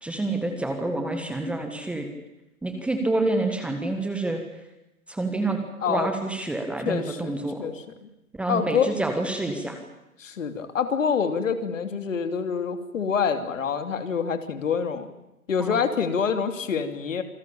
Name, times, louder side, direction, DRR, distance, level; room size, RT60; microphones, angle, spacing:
voice 1, 0.0-2.1 2.6-4.4 5.1-5.6 5.9-7.7 8.3-9.8 15.6-15.8, right 2 dB, 5° right, 5 dB, 1.5 m, -28 dB
voice 2, 6.8-7.3 7.6-7.8 8.5-8.9 10.2-15.1 15.5-17.2, left 6 dB, 60° left, 8 dB, 3.1 m, -26 dB
27.5 x 19.0 x 8.8 m, 0.92 s
hypercardioid pair, 145°, 43 cm